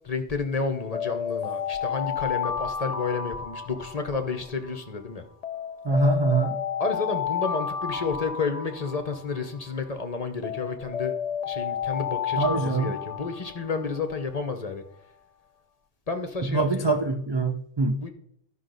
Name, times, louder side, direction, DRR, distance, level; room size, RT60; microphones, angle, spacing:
voice 1, 0.0-5.3 6.8-11.1 11.4-14.8 16.1-17.0 18.0-18.1, left 4 dB, 35° left, 0.8 m, -31 dB
Alarm, 0.7-4.9 5.4-9.9 10.4-14.2, left 8 dB, 55° left, 0.4 m, -32 dB
voice 2, 5.8-6.6 12.4-13.0 16.5-18.0, right 3 dB, 40° right, 0.3 m, -24 dB
13.0 x 5.6 x 3.9 m
omnidirectional pair, 1.2 m